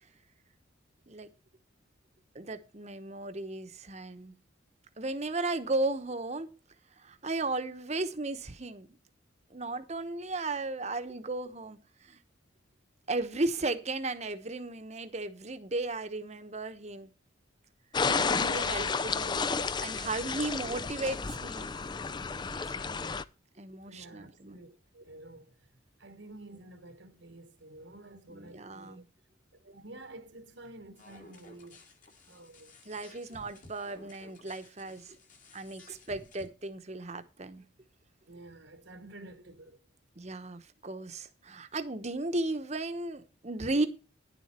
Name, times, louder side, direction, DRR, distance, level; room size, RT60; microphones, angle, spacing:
voice 1, 2.3-4.3 5.0-6.5 7.0-8.9 9.5-12.2 13.1-17.1 18.1-21.7 22.8-22.9 23.6-24.6 28.3-29.1 32.9-35.2 35.5-37.6 40.2-43.9, right 2 dB, 35° right, 1.0 m, -35 dB
sound 1, 17.9-23.2, left 5 dB, 20° left, 0.4 m, -31 dB
voice 2, 23.8-25.5 26.0-29.0 29.5-31.8 32.2-33.1 38.3-39.8, right 2 dB, 65° right, 1.2 m, -50 dB
sound 2, 31.0-36.5, left 2 dB, 40° left, 2.2 m, -55 dB
10.5 x 7.4 x 4.3 m
head